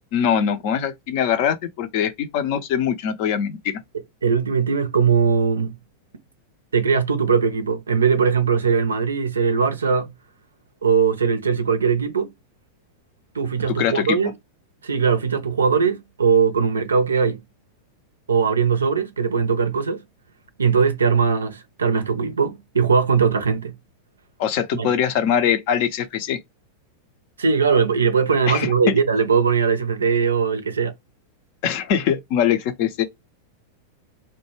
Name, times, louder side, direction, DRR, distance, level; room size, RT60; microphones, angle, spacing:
voice 1, 0.1-3.8 13.8-14.2 24.4-26.4 28.5-28.9 31.6-33.0, left 8 dB, 45° left, 0.5 m, -22 dB
voice 2, 4.2-5.8 6.7-10.1 10.8-12.3 13.3-14.3 14.8-17.4 18.3-20.0 20.6-23.7 24.8-24.9 27.4-30.9, right 5 dB, 70° right, 0.5 m, -20 dB
2.1 x 2.1 x 3.1 m
figure-of-eight pair, 90°, 0 cm